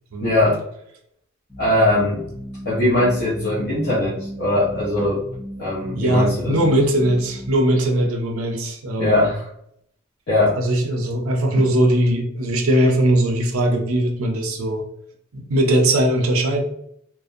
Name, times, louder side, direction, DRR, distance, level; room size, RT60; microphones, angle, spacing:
voice 1, 0.2-0.6 1.6-2.2 2.7-5.2 5.6-6.6 9.0-9.5 10.3-10.6, left 1 dB, 50° left, -8 dB, 0.6 m, -20 dB
sound 1, 1.5-7.5, left 1 dB, 5° left, 0.5 m, -35 dB
voice 2, 6.0-9.2 10.6-14.8 15.3-16.6, right 1 dB, 75° right, 3 dB, 0.5 m, -20 dB
2.4 x 2.0 x 2.5 m, 0.72 s
head